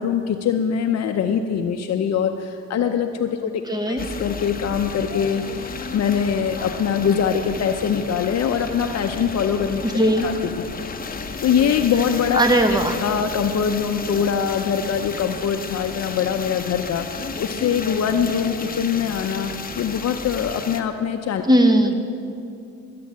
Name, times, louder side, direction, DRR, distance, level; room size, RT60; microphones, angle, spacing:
voice 1, 0.0-3.5 3.9-9.8 10.2-10.6 11.1-12.5 13.0-21.4, left 7 dB, 60° left, 5 dB, 0.7 m, -23 dB
voice 2, 3.7-4.1 9.8-10.3 12.3-13.0 21.4-21.9, right 1 dB, 15° right, 6 dB, 1.3 m, -18 dB
sound 1, 4.0-20.8, left 4 dB, 30° left, 1.0 m, -33 dB
14.0 x 8.5 x 7.3 m, 2.5 s
cardioid pair, 90°, 30 cm